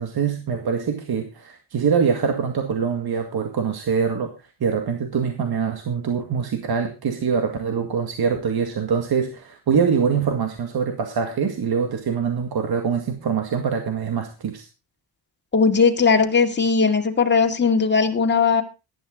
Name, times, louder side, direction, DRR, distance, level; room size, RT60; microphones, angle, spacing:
voice 1, 0.0-4.3 4.6-14.7, right 6 dB, 60° right, 5 dB, 2.0 m, -24 dB
voice 2, 15.5-18.6, left 5 dB, 25° left, 3 dB, 2.3 m, -18 dB
14.5 x 12.0 x 3.8 m, 0.29 s
cardioid pair, 110°, 42 cm